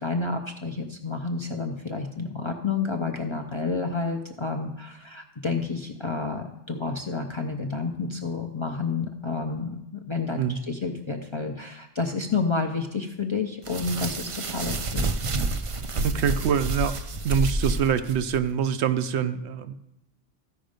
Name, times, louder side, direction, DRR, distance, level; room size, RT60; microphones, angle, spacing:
voice 1, 0.0-15.1, left 4 dB, 35° left, 2 dB, 0.5 m, -30 dB
sound 1, 13.6-18.4, right 2 dB, 45° right, 0.4 m, -29 dB
voice 2, 16.0-17.0 17.2-19.7, right 7 dB, 70° right, 11 dB, 0.8 m, -25 dB
14.0 x 5.2 x 5.1 m, 0.87 s
omnidirectional pair, 1.2 m